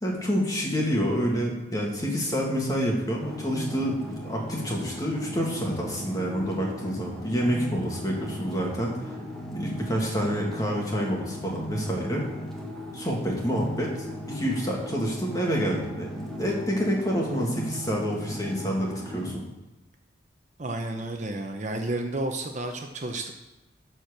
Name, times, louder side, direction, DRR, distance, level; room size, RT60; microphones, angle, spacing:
voice 1, 0.0-9.1 9.5-12.2 12.9-19.4, equal, 20° left, -2 dB, 2.1 m, -28 dB
sound 1, 3.2-19.3, equal, ahead, 1.5 m, -37 dB
voice 2, 20.6-23.3, right 2 dB, 40° right, 4 dB, 0.8 m, -31 dB
12.0 x 4.5 x 6.7 m, 1.0 s
head